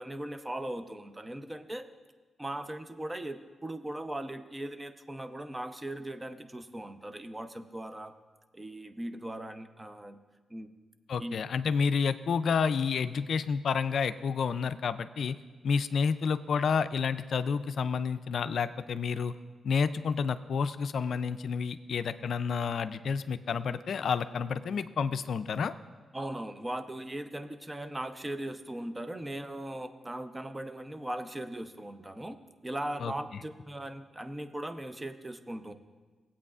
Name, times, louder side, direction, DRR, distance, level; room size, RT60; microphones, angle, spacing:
voice 1, 0.0-1.8 2.4-8.1 8.5-10.2 10.5-10.7 11.2-11.4 26.1-32.4 32.6-35.7, right 1 dB, 20° right, 9 dB, 0.7 m, -39 dB
voice 2, 11.1-15.4 15.6-19.3 19.6-25.7 33.0-33.1, left 6 dB, 70° left, 12 dB, 0.4 m, -30 dB
17.5 x 8.4 x 2.4 m, 1.4 s
cardioid pair, 65°, 0 cm